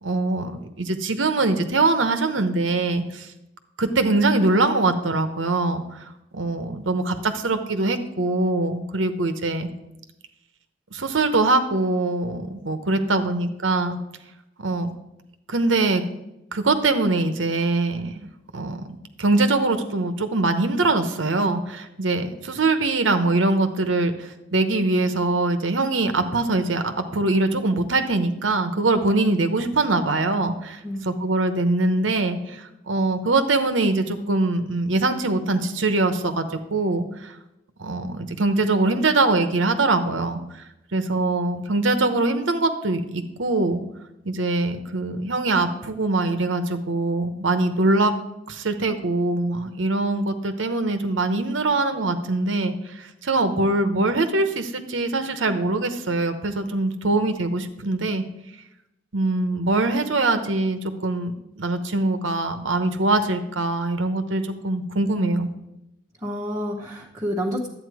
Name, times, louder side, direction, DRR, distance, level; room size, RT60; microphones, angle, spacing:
voice 1, 0.0-3.3 3.8-5.8 6.3-9.7 10.9-14.0 14.6-14.9 15.5-16.0 16.5-18.1 18.5-18.8 19.2-30.8 31.1-37.3 37.8-40.4 40.9-43.8 44.2-48.1 48.5-58.2 59.1-65.5, right 2 dB, 75° right, 8 dB, 1.0 m, -23 dB
voice 2, 12.9-13.6 30.8-31.3 66.2-67.7, equal, 15° right, -4 dB, 1.0 m, -30 dB
11.5 x 8.6 x 4.8 m, 0.88 s
head